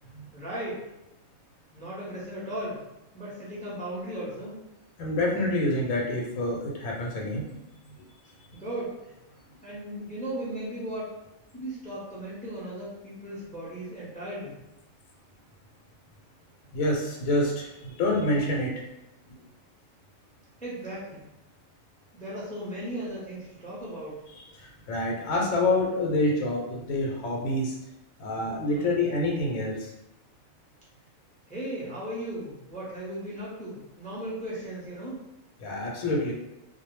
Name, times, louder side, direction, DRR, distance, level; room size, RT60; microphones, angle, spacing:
voice 1, 0.3-0.8 1.7-2.8 3.1-4.6 8.2-9.1 9.6-11.1 11.5-14.6 20.6-21.3 22.1-24.3 28.7-29.1 31.5-35.2, right 1 dB, 10° left, -7 dB, 0.4 m, -36 dB
voice 2, 5.0-7.4 16.7-18.7 19.3-19.4 24.6-27.8 28.2-29.9 35.6-36.3, left 2 dB, 80° left, -1 dB, 1.0 m, -27 dB
2.3 x 2.0 x 3.0 m, 0.91 s
omnidirectional pair, 1.4 m